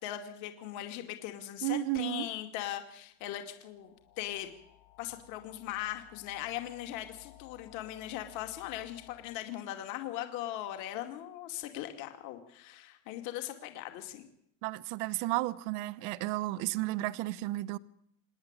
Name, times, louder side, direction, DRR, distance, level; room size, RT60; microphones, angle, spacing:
voice 1, 0.0-3.9 4.2-4.5 5.0-14.3, left 13 dB, 40° left, 2.4 m, -39 dB
voice 2, 1.6-2.3 14.6-17.8, right 17 dB, 40° right, 0.8 m, -33 dB
sound 1, 2.6-9.4, left 16 dB, 60° left, 7.0 m, -59 dB
26.0 x 10.5 x 9.7 m
supercardioid pair, 165°, 44 cm